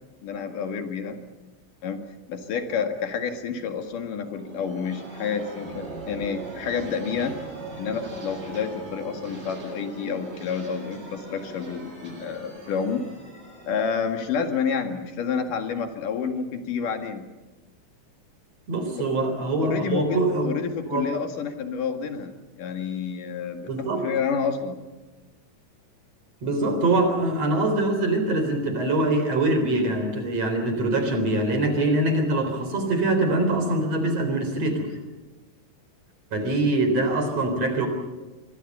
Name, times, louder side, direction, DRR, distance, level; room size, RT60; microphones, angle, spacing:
voice 1, 0.2-1.2 1.8-2.0 2.3-7.4 7.8-13.0 13.7-17.3 19.0-19.1 19.6-24.8, left 6 dB, 80° left, 5 dB, 3.5 m, -29 dB
sound 1, 4.0-15.5, right 2 dB, 80° right, 9.6 m, -41 dB
voice 2, 18.7-20.5 20.9-21.1 23.7-24.0 26.4-34.9 36.3-37.9, right 2 dB, 50° right, 6 dB, 5.0 m, -23 dB
26.0 x 24.0 x 5.6 m, 1.2 s
omnidirectional pair, 3.7 m